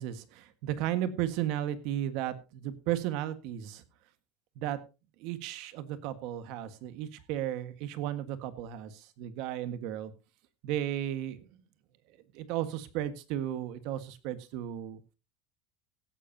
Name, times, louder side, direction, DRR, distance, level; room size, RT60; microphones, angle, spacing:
voice 1, 0.0-3.8 4.5-4.8 5.2-10.1 10.6-11.4 12.3-15.0, right 12 dB, 55° right, 11 dB, 1.6 m, -34 dB
16.5 x 13.0 x 2.8 m, 0.29 s
cardioid pair, 165°, 0 cm